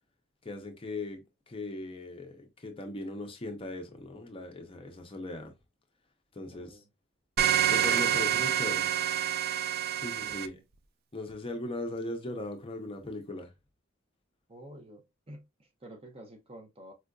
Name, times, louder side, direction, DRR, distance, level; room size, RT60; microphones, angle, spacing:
voice 1, 0.4-5.5 6.3-6.8 7.7-8.9 10.0-10.5 11.1-13.5, left 2 dB, 25° left, 0.5 m, -39 dB
voice 2, 6.4-6.9 10.2-10.6 14.5-16.9, right 1 dB, 30° right, 0.7 m, -51 dB
sound 1, 7.4-10.5, right 10 dB, 45° right, 0.3 m, -27 dB
4.4 x 2.5 x 2.3 m
head